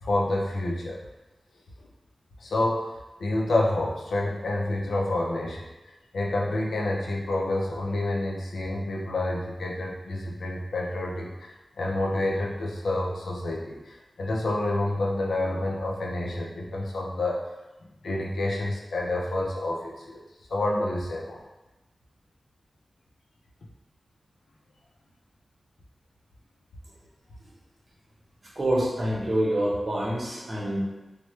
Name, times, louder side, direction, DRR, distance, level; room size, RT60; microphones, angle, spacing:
voice 1, 0.0-1.0 2.4-17.4 18.0-20.2 20.5-21.4, left 2 dB, 90° left, -2 dB, 0.5 m, -28 dB
voice 2, 28.6-30.8, right 1 dB, 45° right, -4 dB, 0.9 m, -26 dB
3.1 x 2.2 x 3.1 m, 1.0 s
cardioid pair, 60°, 0 cm